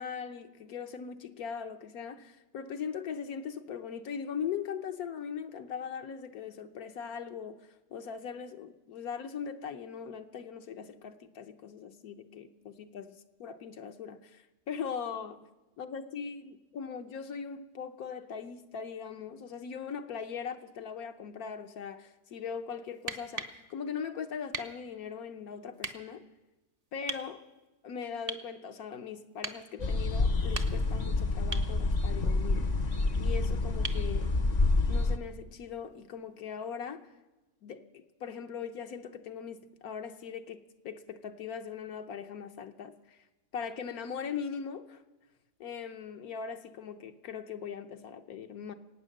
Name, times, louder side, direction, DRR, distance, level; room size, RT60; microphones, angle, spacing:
voice 1, 0.0-15.4 15.8-26.2 26.9-27.4 27.8-32.7 33.2-34.3 34.9-37.0 37.6-43.2 43.5-45.0 45.6-48.7, left 7 dB, 70° left, 1.3 m, -40 dB
sound 1, 22.9-23.6 24.5-24.7 25.8-26.0 27.1-27.3 28.3-28.5 29.4-29.6 30.4-31.0 31.5-31.7 33.8-34.1 35.9-36.0, right 4 dB, 35° right, 0.6 m, -38 dB
sound 2, 29.8-35.2, left 3 dB, 40° left, 0.6 m, -28 dB
23.5 x 9.2 x 6.5 m
omnidirectional pair, 1.7 m